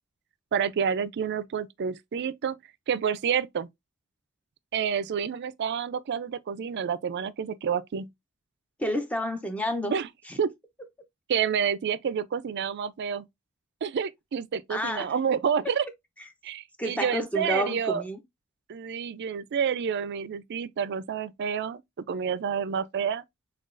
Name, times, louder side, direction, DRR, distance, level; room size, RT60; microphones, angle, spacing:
voice 1, 0.5-2.6 2.9-3.7 4.7-8.1 9.9-10.1 10.4-10.5 11.3-13.3 13.8-15.9 16.4-18.0 18.7-21.8 22.1-23.2, right 7 dB, 55° right, 0.4 m, -29 dB
voice 2, 8.8-9.9 14.7-15.1 16.8-18.2, equal, 5° left, 0.6 m, -29 dB
6.1 x 2.3 x 2.4 m
head